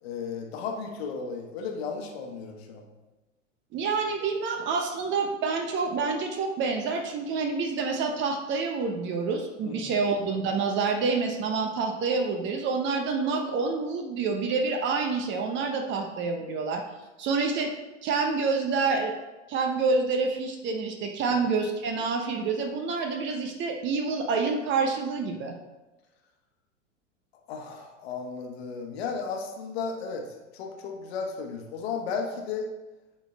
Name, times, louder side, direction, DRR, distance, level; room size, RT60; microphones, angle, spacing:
voice 1, 0.0-2.9 9.7-10.0 27.5-32.7, left 5 dB, 50° left, 2 dB, 1.4 m, -34 dB
voice 2, 3.7-16.8 17.2-17.7 18.0-19.1 19.5-25.5, right 4 dB, 30° right, 4 dB, 0.9 m, -27 dB
8.8 x 4.4 x 4.0 m, 1.1 s
figure-of-eight pair, 90°, 39 cm